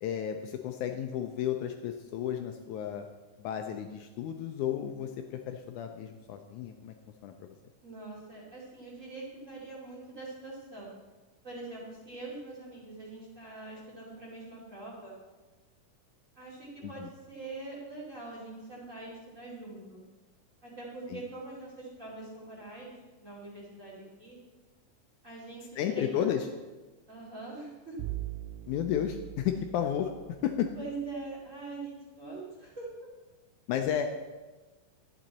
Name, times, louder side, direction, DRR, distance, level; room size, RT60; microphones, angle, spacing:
voice 1, 0.0-3.1 3.4-6.9 7.2-7.3 16.8-17.1 21.1-21.2 25.8-26.5 28.7-30.1 30.4-30.7 33.7-34.1, left 9 dB, 80° left, 5 dB, 1.9 m, -32 dB
voice 2, 7.8-10.9 11.4-15.2 16.3-20.0 20.6-24.4 25.2-26.3 27.1-28.0 30.8-32.9, right 3 dB, 25° right, -5 dB, 2.5 m, -43 dB
Bowed string instrument, 28.0-31.1, right 16 dB, 80° right, 2.2 m, -41 dB
12.0 x 9.0 x 4.1 m, 1.2 s
omnidirectional pair, 3.8 m